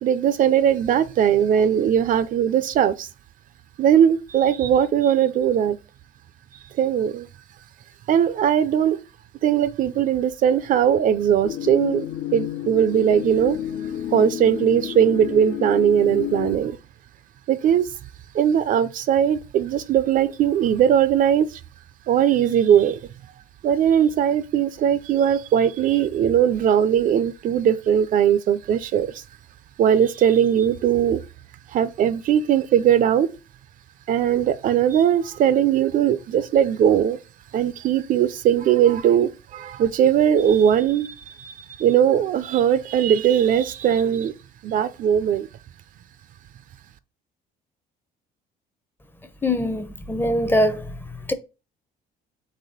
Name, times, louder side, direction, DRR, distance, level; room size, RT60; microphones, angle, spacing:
voice 1, 0.0-3.1 3.8-5.8 6.8-7.3 8.1-9.0 9.4-12.1 12.3-13.6 14.1-16.8 17.5-17.9 18.3-21.6 22.1-23.0 23.6-29.2 29.8-31.2 31.7-33.3 34.1-37.2 37.5-44.3 44.6-45.5, right 9 dB, 55° right, 0.4 m, -19 dB
Mystic Minimalistic Loop, 11.4-16.6, left 12 dB, 70° left, 0.4 m, -30 dB
voice 2, 49.4-50.9 51.3-51.4, left 1 dB, 15° left, 0.5 m, -22 dB
4.0 x 3.0 x 3.8 m
cardioid pair, 110°, 17 cm